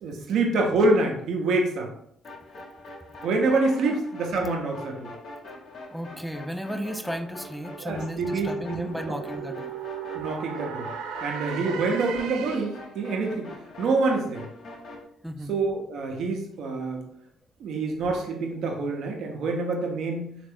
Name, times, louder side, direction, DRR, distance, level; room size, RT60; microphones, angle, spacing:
voice 1, 0.0-1.9 3.2-5.1 7.8-9.2 10.1-10.9 11.2-13.5 13.8-14.5 15.5-17.0 17.6-20.3, right 3 dB, 70° right, 2 dB, 0.7 m, -26 dB
sound 1, 2.2-15.0, left 2 dB, 65° left, 1.0 m, -43 dB
voice 2, 5.9-9.7 11.7-12.1 15.2-15.5, equal, 5° right, 6 dB, 0.4 m, -34 dB
sound 2, 6.8-12.9, right 8 dB, 85° right, 0.3 m, -37 dB
3.3 x 2.5 x 3.5 m, 0.69 s
supercardioid pair, 70°, 0 cm